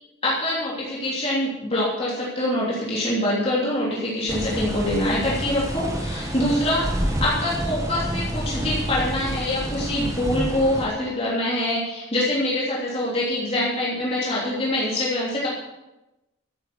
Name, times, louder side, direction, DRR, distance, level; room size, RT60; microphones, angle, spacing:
voice 1, 0.2-15.5, left 1 dB, 30° left, -7 dB, 3.2 m, -25 dB
sound 1, 4.3-10.9, right 1 dB, 15° right, 1.5 m, -28 dB
13.5 x 9.1 x 7.0 m, 0.98 s
head